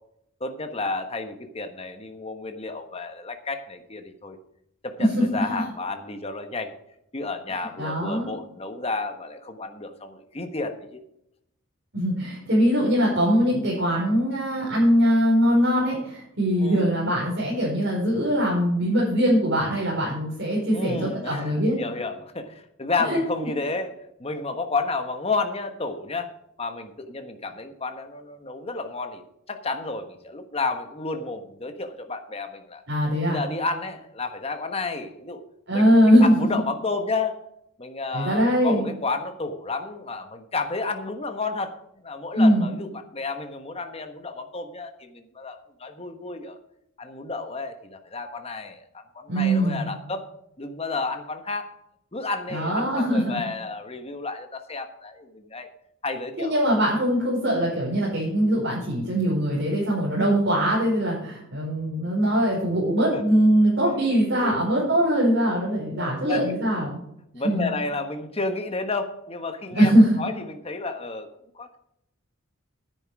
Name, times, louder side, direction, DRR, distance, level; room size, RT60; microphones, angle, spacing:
voice 1, 0.4-4.4 4.8-6.7 7.1-11.0 16.6-16.9 20.7-23.9 24.2-26.3 26.6-32.8 33.3-35.4 35.7-37.4 37.8-41.8 42.0-46.6 47.0-50.3 50.6-51.7 52.1-55.7 56.0-56.6 63.1-63.2 64.4-64.7 66.0-66.5 67.3-69.9 70.2-71.3 71.5-71.8, left 3 dB, 30° left, 7 dB, 1.3 m, -31 dB
voice 2, 7.8-8.3 11.9-21.8 23.0-23.2 32.9-33.4 35.7-36.3 38.1-38.9 42.3-42.7 49.3-49.9 52.5-53.4 56.4-67.0 67.4-67.7 69.7-70.2, equal, 60° right, -7 dB, 4.7 m, -21 dB
9.9 x 9.8 x 4.8 m, 0.78 s
head